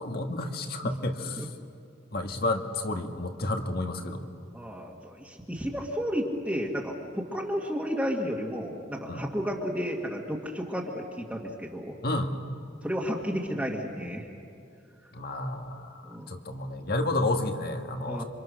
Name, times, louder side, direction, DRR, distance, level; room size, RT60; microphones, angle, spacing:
voice 1, 0.0-1.5 2.1-4.3 9.1-9.2 12.0-12.3 15.1-18.2, left 2 dB, 50° left, 4 dB, 1.8 m, -31 dB
voice 2, 4.5-12.0 12.8-14.3 16.0-16.4 18.1-18.2, equal, 5° right, -3 dB, 1.9 m, -32 dB
28.0 x 26.0 x 6.4 m, 2.5 s
head